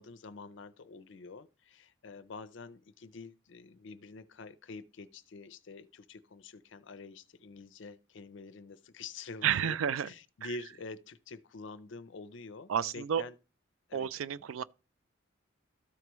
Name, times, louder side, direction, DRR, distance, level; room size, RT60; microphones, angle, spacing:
voice 1, 0.0-9.8 10.0-13.3 13.9-14.1, left 3 dB, 65° left, 0.5 m, -47 dB
voice 2, 9.4-10.1 12.7-13.2 13.9-14.6, right 8 dB, 80° right, 0.4 m, -30 dB
13.0 x 4.7 x 3.0 m
head